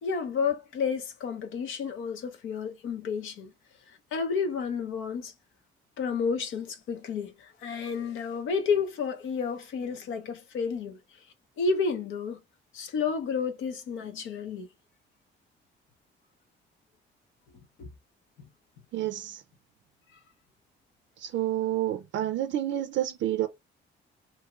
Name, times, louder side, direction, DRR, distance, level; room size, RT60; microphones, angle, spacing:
voice 1, 0.0-3.5 3.9-5.3 6.0-11.0 11.6-12.4 12.7-14.7 17.8-17.9, left 5 dB, 85° left, 0.8 m, -31 dB
voice 2, 18.9-19.4 21.2-23.5, right 13 dB, 70° right, 0.4 m, -29 dB
2.7 x 2.3 x 2.9 m
cardioid pair, 90°, 20 cm